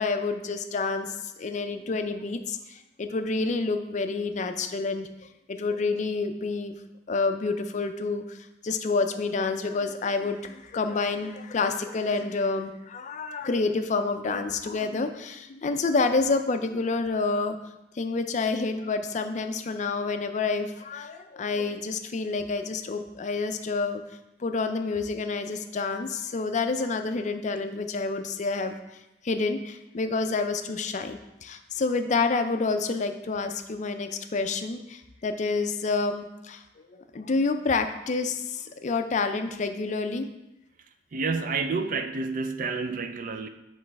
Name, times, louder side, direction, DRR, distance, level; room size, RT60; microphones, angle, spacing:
voice 1, 0.0-5.1 5.5-6.7 7.1-8.4 8.6-17.6 18.0-24.0 24.4-28.8 29.2-36.6 36.9-40.3, left 3 dB, 40° left, 8 dB, 0.4 m, -28 dB
voice 2, 41.1-43.5, right 4 dB, 45° right, 8 dB, 0.4 m, -29 dB
8.2 x 3.1 x 4.6 m, 0.93 s
head